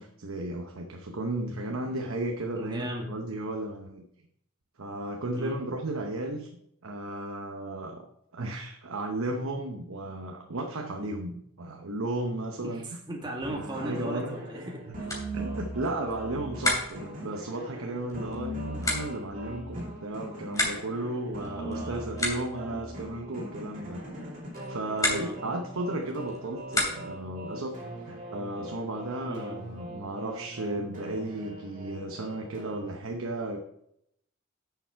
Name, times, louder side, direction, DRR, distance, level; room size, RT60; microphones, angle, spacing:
voice 1, 0.0-4.1 4.8-6.5 6.8-8.1 8.3-12.8 13.5-14.4 15.3-24.0 24.7-27.8 28.1-33.8, right 1 dB, 90° right, 3 dB, 0.9 m, -34 dB
voice 2, 2.5-3.1 5.3-5.6 12.6-15.1 21.4-22.1 25.0-25.3 29.2-29.6, right 1 dB, 20° right, -1 dB, 1.8 m, -37 dB
sound 1, 13.4-32.9, right 1 dB, 40° right, 2.7 m, -41 dB
sound 2, 14.7-27.3, left 2 dB, 15° left, 3.0 m, -35 dB
10.0 x 7.1 x 4.5 m, 0.75 s
head